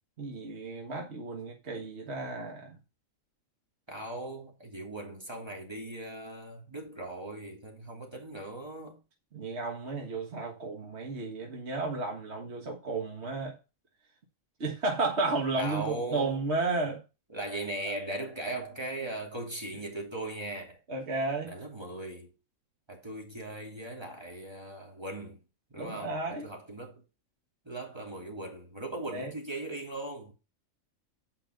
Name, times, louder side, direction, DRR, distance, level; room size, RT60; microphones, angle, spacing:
voice 1, 0.2-2.8 9.3-13.6 14.6-17.0 20.9-21.6 25.8-26.5 29.1-29.3, right 3 dB, 50° right, 1.9 m, -33 dB
voice 2, 3.9-9.0 15.5-16.4 17.3-20.8 21.4-22.3 22.9-25.4 25.7-27.0 27.6-30.3, right 2 dB, 20° right, 3.0 m, -39 dB
9.0 x 5.7 x 5.3 m
omnidirectional pair, 1.4 m